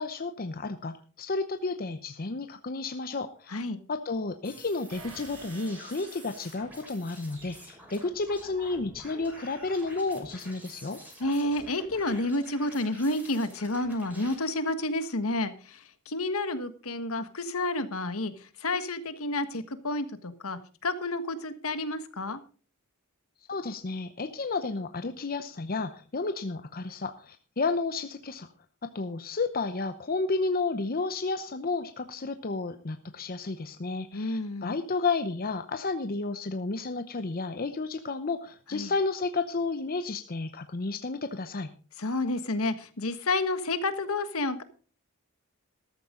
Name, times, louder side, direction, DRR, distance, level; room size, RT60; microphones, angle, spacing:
voice 1, 0.0-3.6 3.9-11.0 23.5-28.5 28.8-41.7, left 3 dB, 45° left, 9 dB, 0.8 m, -32 dB
sound 1, 4.4-14.3, equal, 10° right, 6.5 m, -49 dB
sound 2, 4.9-7.1, right 3 dB, 80° right, 5.1 m, -49 dB
voice 2, 11.2-18.3 18.6-22.4 34.1-34.7 38.7-38.9 42.0-44.6, left 2 dB, 70° left, 11 dB, 1.5 m, -30 dB
14.0 x 13.0 x 3.8 m, 0.38 s
head